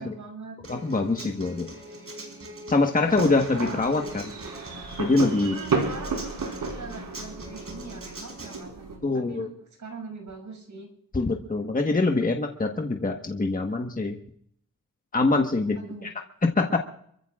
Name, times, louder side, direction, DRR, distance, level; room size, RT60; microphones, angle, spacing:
voice 1, 0.0-0.6 1.5-1.9 5.4-6.3 6.6-9.5 9.8-10.9 15.6-16.1 16.6-16.7, right 4 dB, 60° right, 3 dB, 6.4 m, -42 dB
Human voice / Acoustic guitar, 0.6-8.6, right 1 dB, 40° right, 4.4 m, -41 dB
voice 2, 0.7-1.7 2.7-4.2 5.0-5.5 9.0-9.5 11.1-14.2 15.1-16.1 16.4-16.8, left 3 dB, 25° left, 3 dB, 1.4 m, -24 dB
sound 1, 3.0-9.0, right 4 dB, 75° right, 4.2 m, -33 dB
27.5 x 15.0 x 2.5 m, 0.66 s
wide cardioid pair, 100°, 34 cm